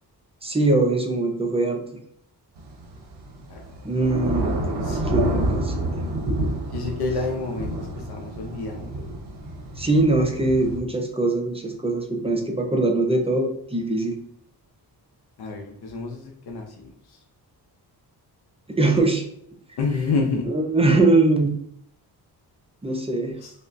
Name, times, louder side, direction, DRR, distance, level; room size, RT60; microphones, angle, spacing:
voice 1, 0.4-1.8 3.8-4.5 5.0-6.0 9.8-14.2 18.7-19.2 20.5-21.6 22.8-23.4, right 2 dB, 15° right, 3 dB, 0.4 m, -22 dB
Thunder / Rain, 2.6-10.8, right 1 dB, 90° right, 0.9 m, -28 dB
voice 2, 4.4-5.3 6.7-9.1 15.4-16.9 19.8-20.5 23.4-23.5, left 4 dB, 70° left, 1 dB, 0.7 m, -29 dB
5.3 x 2.1 x 2.5 m, 0.67 s
wide cardioid pair, 175°, 40 cm